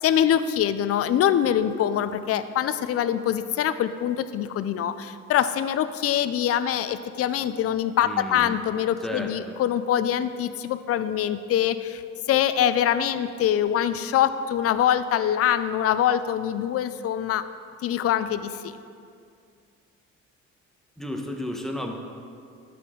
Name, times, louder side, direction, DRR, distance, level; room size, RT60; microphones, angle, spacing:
voice 1, 0.0-12.0 12.3-17.5 17.8-18.8, left 10 dB, 50° left, 12 dB, 0.4 m, -24 dB
voice 2, 8.0-8.5 9.0-9.5 21.0-22.0, equal, ahead, 1 dB, 0.9 m, -33 dB
12.0 x 4.3 x 3.7 m, 2.3 s
cardioid pair, 90°, 30 cm